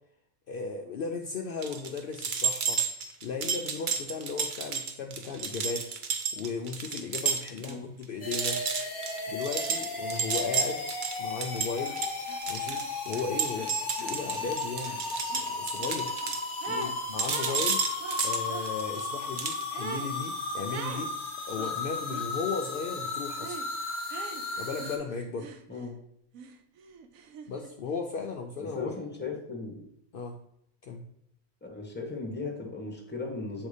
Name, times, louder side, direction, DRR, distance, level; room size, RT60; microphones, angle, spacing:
voice 1, 0.5-2.8 3.2-5.9 6.3-8.6 9.3-10.9 11.2-12.0 12.5-15.0 15.3-16.1 17.1-17.8 18.2-21.1 21.5-23.6 24.6-25.5 27.5-28.9 30.1-30.4 30.8-31.0, left 5 dB, 70° left, 2 dB, 0.5 m, -36 dB
sound 1, 1.6-7.7 8.0-8.1 8.3-16.9 17.2-19.0 19.4-19.6, right 6 dB, 60° right, 0.5 m, -32 dB
sound 2, 8.2-25.0, left 3 dB, 40° left, 1.2 m, -35 dB
sound 3, 11.8-12.0 12.3-17.0 17.3-18.7 19.7-20.1 20.7-21.1 21.6-22.3 23.4-23.7 24.1-25.9 26.3-27.7, right 7 dB, 80° right, 1.0 m, -43 dB
voice 2, 28.6-29.9 31.6-33.7, left 4 dB, 10° left, 1 dB, 0.9 m, -37 dB
7.7 x 2.7 x 4.8 m, 0.75 s
omnidirectional pair, 1.5 m